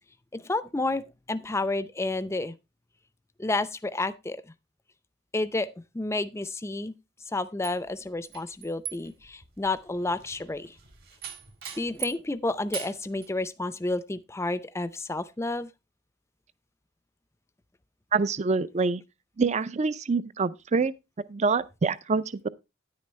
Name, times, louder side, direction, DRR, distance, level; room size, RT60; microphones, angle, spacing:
voice 1, 0.3-2.5 3.4-4.4 5.3-5.7 5.9-6.9 7.3-10.7 11.8-15.7, left 2 dB, 15° left, 0.5 m, -30 dB
sound 1, 7.6-12.3 12.7-13.3, right 10 dB, 55° right, 1.9 m, -40 dB
voice 2, 18.1-19.0 19.4-20.9 21.3-22.5, right 4 dB, 35° right, 0.5 m, -26 dB
9.9 x 9.5 x 3.2 m
head